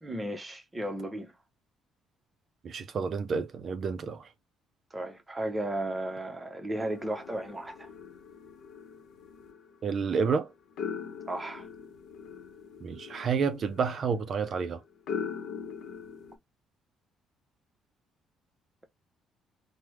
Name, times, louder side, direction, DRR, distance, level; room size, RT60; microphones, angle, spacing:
voice 1, 0.0-1.3 4.9-7.9 11.3-11.7, right 1 dB, 15° right, 0.7 m, -34 dB
voice 2, 2.6-4.3 9.8-10.5 12.8-14.8, right 5 dB, 45° right, 0.4 m, -30 dB
sound 1, 6.8-16.4, left 6 dB, 70° left, 0.8 m, -41 dB
3.3 x 2.1 x 3.0 m
cardioid pair, 130°, 0 cm